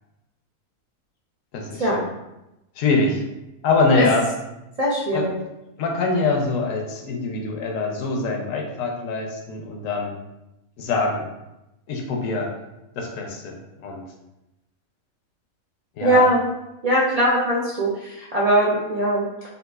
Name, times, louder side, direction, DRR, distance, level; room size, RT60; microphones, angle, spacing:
voice 1, 1.5-2.1 2.8-3.2 3.6-4.2 5.1-5.3 5.8-10.2 10.8-11.3 11.9-12.5 13.0-14.0 16.0-16.2, left 3 dB, 70° left, 1 dB, 0.9 m, -24 dB
voice 2, 4.8-5.3 16.0-16.4 16.8-19.3, right 1 dB, 85° right, -6 dB, 0.3 m, -20 dB
3.9 x 2.4 x 2.3 m, 0.94 s
omnidirectional pair, 1.5 m